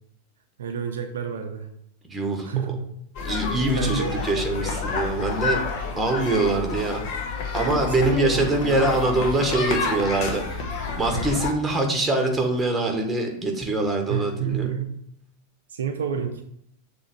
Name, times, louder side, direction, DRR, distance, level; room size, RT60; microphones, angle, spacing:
voice 1, 0.6-1.7 2.4-2.8 3.8-4.2 7.8-8.9 11.1-11.3 14.1-14.9 15.7-16.4, right 7 dB, 65° right, 5 dB, 0.6 m, -29 dB
voice 2, 2.1-2.7 3.2-5.6 6.0-7.0 7.5-10.6 11.0-14.7, right 2 dB, 10° right, 3 dB, 1.4 m, -24 dB
sound 1, 3.1-11.5, left 4 dB, 45° left, 1.1 m, -29 dB
7.1 x 3.3 x 6.0 m, 0.72 s
figure-of-eight pair, 90°, 0 cm